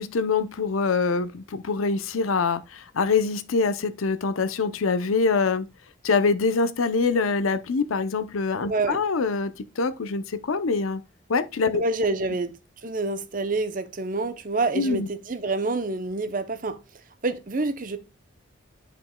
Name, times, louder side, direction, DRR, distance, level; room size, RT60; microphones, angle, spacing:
voice 1, 0.0-5.7 6.0-11.0 11.3-11.8 14.8-15.1, left 4 dB, 90° left, 0.6 m, -24 dB
voice 2, 8.7-9.0 11.7-12.5 12.8-16.8 17.2-18.0, right 3 dB, 40° right, 0.6 m, -27 dB
10.5 x 5.1 x 2.2 m
head